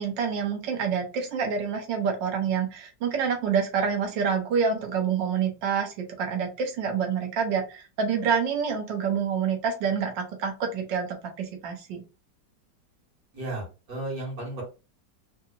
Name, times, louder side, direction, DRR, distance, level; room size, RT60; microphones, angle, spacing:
voice 1, 0.0-12.0, right 6 dB, 85° right, 3 dB, 1.6 m, -27 dB
voice 2, 13.3-14.6, right 2 dB, 55° right, -4 dB, 2.3 m, -34 dB
4.0 x 2.8 x 2.4 m, 0.31 s
omnidirectional pair, 1.9 m